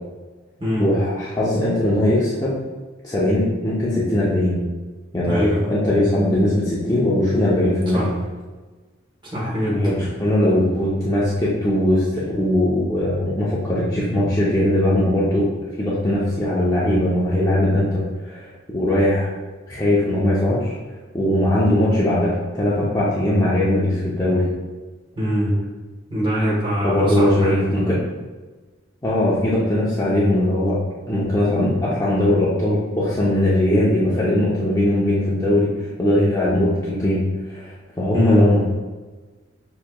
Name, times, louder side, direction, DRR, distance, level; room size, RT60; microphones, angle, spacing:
voice 1, 0.8-2.5 3.0-4.6 5.1-8.1 9.7-15.5 15.8-19.3 19.7-20.7 21.1-24.5 26.8-28.0 29.0-30.8 31.1-38.6, left 1 dB, 15° left, -8 dB, 0.6 m, -20 dB
voice 2, 5.2-5.7 7.9-8.1 9.3-9.8 25.2-25.5 26.1-27.8 38.1-38.4, equal, 25° right, -7 dB, 1.2 m, -23 dB
6.5 x 2.9 x 2.2 m, 1.3 s
head